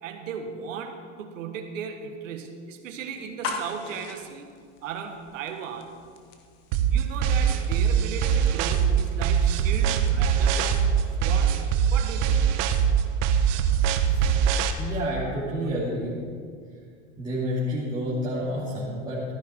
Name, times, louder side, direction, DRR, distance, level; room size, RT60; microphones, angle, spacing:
voice 1, 0.0-4.5 4.8-5.9 6.9-10.8 11.2-11.6 11.9-12.5, right 6 dB, 80° right, 5 dB, 1.7 m, -36 dB
sound 1, 3.2-12.9, left 4 dB, 65° left, 1.7 m, -43 dB
sound 2, 6.7-14.7, right 8 dB, 45° right, 0.9 m, -22 dB
voice 2, 14.7-16.1 17.2-19.2, equal, 10° right, -10 dB, 2.7 m, -29 dB
14.0 x 10.0 x 4.6 m, 2.1 s
supercardioid pair, 135°, 38 cm